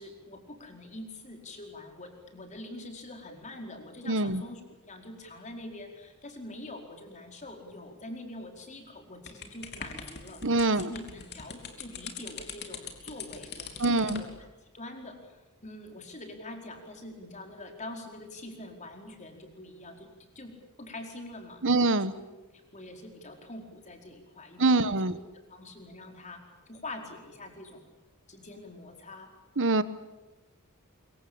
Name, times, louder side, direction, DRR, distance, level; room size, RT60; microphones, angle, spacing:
voice 1, 0.0-14.3 14.6-15.3 15.6-20.5 20.8-21.6 22.1-22.3 22.7-27.9 28.3-29.3, left 1 dB, 35° left, 3 dB, 4.7 m, -44 dB
voice 2, 4.1-4.4 10.4-10.9 13.8-14.2 21.6-22.1 24.6-25.2 29.6-29.8, right 3 dB, 60° right, 14 dB, 1.3 m, -24 dB
sound 1, 9.3-14.3, left 6 dB, 50° left, 3.3 m, -42 dB
25.5 x 23.5 x 8.8 m, 1.1 s
head